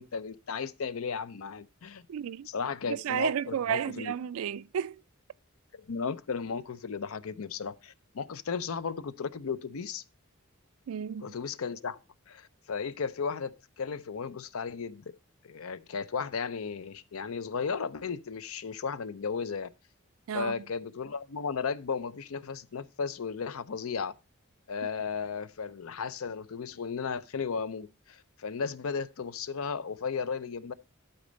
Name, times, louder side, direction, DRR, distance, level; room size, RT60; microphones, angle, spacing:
voice 1, 0.0-2.0 2.5-4.1 5.7-10.0 11.2-12.0 12.3-15.0 15.4-19.7 20.3-24.1 24.7-30.7, left 5 dB, 85° left, 0.6 m, -35 dB
voice 2, 2.1-2.5 2.9-5.0 10.9-11.3 20.3-20.6, right 9 dB, 75° right, 0.3 m, -32 dB
12.0 x 4.2 x 5.1 m
head